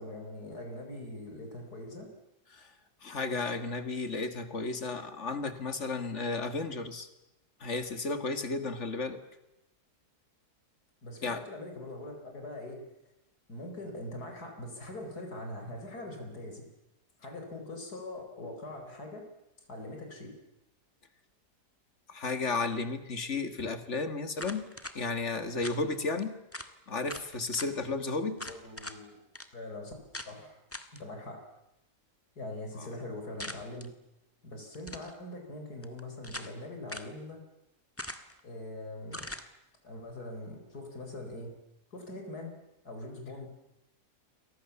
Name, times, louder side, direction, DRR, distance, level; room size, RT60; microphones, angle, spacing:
voice 1, 0.0-2.1 11.0-12.8 13.5-16.6 17.2-19.3 19.7-20.3 28.3-29.2 29.5-29.9 30.3-30.6 30.9-31.4 32.4-33.9 34.4-37.4 38.4-39.3 39.8-41.5 41.9-42.5 42.9-43.5, left 1 dB, 70° left, 4 dB, 5.1 m, -42 dB
voice 2, 3.0-7.1 7.6-9.2 11.2-11.4 22.1-24.7 24.9-26.4 26.9-28.4 32.8-32.9, left 3 dB, 45° left, 10 dB, 2.3 m, -33 dB
sound 1, 24.4-25.0 25.6-25.8 26.2-26.3 26.5-26.7 27.1-27.7 28.4-29.0 29.3-29.5 30.1-30.3 30.7-31.0 33.4-33.9 34.7-35.1 35.8-36.6 36.9-37.1 38.0-38.4 39.1-39.5, left 1 dB, 10° left, 1.5 m, -42 dB
29.0 x 23.5 x 7.1 m, 0.89 s
omnidirectional pair, 1.7 m